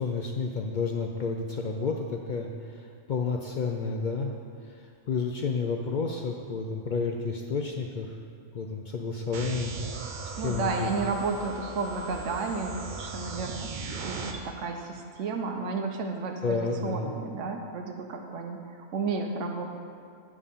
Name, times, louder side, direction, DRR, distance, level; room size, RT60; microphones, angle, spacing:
voice 1, 0.0-2.5 3.1-4.3 5.1-8.1 8.5-9.7 10.4-10.9 16.4-17.1, left 4 dB, 70° left, 1 dB, 0.4 m, -30 dB
sound 1, 9.3-14.3, right 4 dB, 50° right, 0.6 m, -38 dB
voice 2, 10.4-19.6, right 4 dB, 75° right, 3 dB, 1.0 m, -32 dB
9.1 x 3.6 x 6.7 m, 2.2 s
omnidirectional pair, 1.3 m